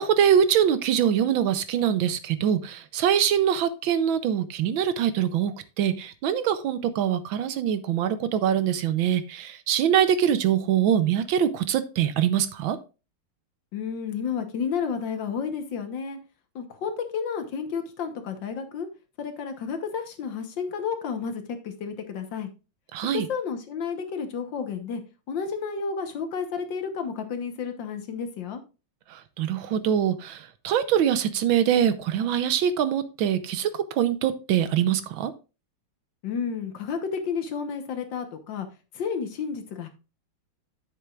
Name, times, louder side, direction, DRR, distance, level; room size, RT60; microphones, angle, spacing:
voice 1, 0.0-12.8 22.9-23.3 29.1-35.3, right 9 dB, 75° right, 13 dB, 1.4 m, -24 dB
voice 2, 13.7-16.2 16.6-18.9 19.2-22.5 23.1-25.0 25.3-28.6 36.2-38.7 39.0-39.9, left 6 dB, 65° left, 7 dB, 1.7 m, -31 dB
9.9 x 7.7 x 2.4 m, 0.30 s
omnidirectional pair, 2.3 m